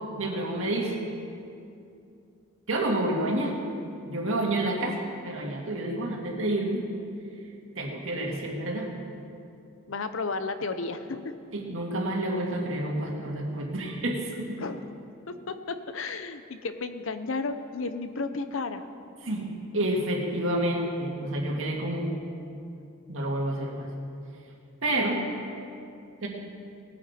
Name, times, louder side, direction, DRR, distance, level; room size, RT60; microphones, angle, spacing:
voice 1, 0.2-1.0 2.7-3.6 4.0-5.0 5.2-6.8 7.8-8.9 11.5-14.6 19.2-22.1 23.1-23.9 24.8-25.2 26.2-26.3, right 1 dB, 65° right, 0 dB, 2.0 m, -29 dB
voice 2, 9.9-11.3 12.9-13.0 14.6-14.9 15.3-18.8, left 3 dB, 65° left, 10 dB, 0.7 m, -33 dB
18.5 x 9.4 x 4.3 m, 2.5 s
head